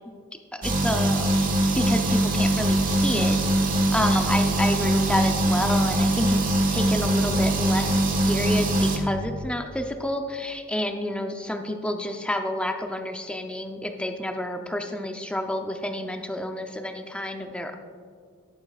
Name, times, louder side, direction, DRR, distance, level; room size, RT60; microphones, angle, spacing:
voice 1, 0.5-1.3 1.7-3.4 3.9-17.7, left 1 dB, 5° left, 4 dB, 0.6 m, -29 dB
sound 1, 0.6-9.0, right 1 dB, 40° right, 1.3 m, -22 dB
17.0 x 9.0 x 2.4 m, 2.1 s
head